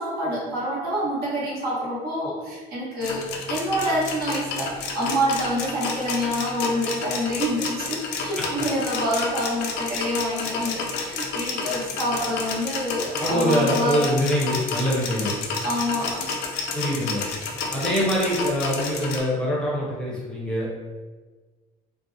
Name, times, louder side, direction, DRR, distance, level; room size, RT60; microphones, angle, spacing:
voice 1, 0.0-14.0 15.6-16.3, equal, 70° right, -7 dB, 1.1 m, -27 dB
sound 1, 3.0-19.2, left 4 dB, 90° left, 0.4 m, -30 dB
voice 2, 13.2-15.3 16.7-17.2 17.7-20.8, equal, 5° left, -6 dB, 0.6 m, -24 dB
2.5 x 2.1 x 2.6 m, 1.3 s
cardioid pair, 110°, 17 cm